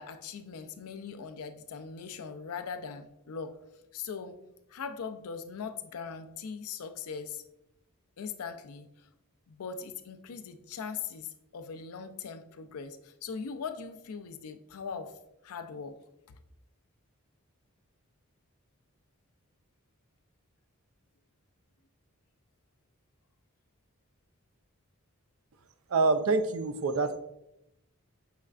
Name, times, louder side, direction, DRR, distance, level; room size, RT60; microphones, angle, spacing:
voice 1, 0.0-3.6 3.9-4.4 4.7-7.4 8.2-9.1 9.5-15.2 15.4-16.0 27.0-27.1, left 6 dB, 85° left, 9 dB, 0.4 m, -40 dB
voice 2, 25.9-27.2, right 3 dB, 70° right, 8 dB, 0.4 m, -26 dB
5.7 x 3.2 x 2.4 m, 0.85 s
head